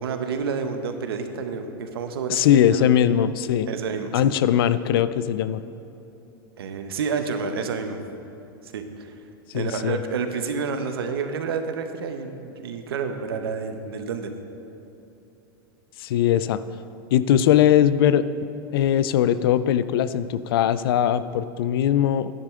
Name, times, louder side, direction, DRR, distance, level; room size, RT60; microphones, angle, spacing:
voice 1, 0.0-2.9 3.7-4.3 6.6-8.0 8.6-9.2 9.5-14.3, right 5 dB, 85° right, 7 dB, 0.9 m, -29 dB
voice 2, 2.3-3.7 4.1-5.6 9.5-10.0 16.0-16.6 17.1-18.2 18.7-22.3, left 10 dB, 70° left, 15 dB, 0.4 m, -20 dB
10.5 x 9.8 x 3.6 m, 2.8 s
hypercardioid pair, 120°, 12 cm